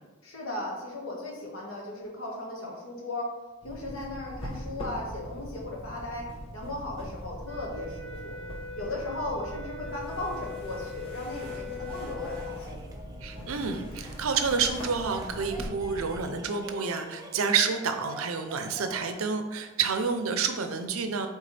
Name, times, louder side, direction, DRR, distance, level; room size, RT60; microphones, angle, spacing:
voice 1, 0.2-3.3 3.6-8.3 8.7-12.8, left 1 dB, 70° left, -2 dB, 1.7 m, -36 dB
sound 1, 3.6-16.2, equal, 25° left, 1.1 m, -41 dB
sound 2, 7.4-12.6, left 4 dB, ahead, 1.4 m, -41 dB
sound 3, 11.8-19.2, right 1 dB, 15° right, 0.5 m, -46 dB
voice 2, 13.2-21.3, right 5 dB, 75° right, 7 dB, 0.6 m, -29 dB
8.1 x 3.5 x 3.3 m, 1.2 s
head